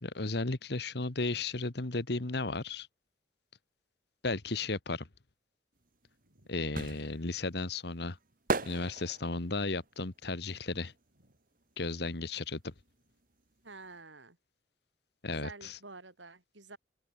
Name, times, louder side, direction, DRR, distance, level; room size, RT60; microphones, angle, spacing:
voice 1, 0.0-2.9 4.2-5.1 6.5-8.2 8.6-10.9 11.8-12.7 15.2-15.8, left 3 dB, 60° left, 1.5 m, -34 dB
sound 1, 5.9-11.7 12.0-13.6 13.8-13.9, right 3 dB, 50° right, 2.6 m, -38 dB
voice 2, 13.6-14.4 15.3-16.8, right 3 dB, 90° right, 6.0 m, -49 dB
open air
head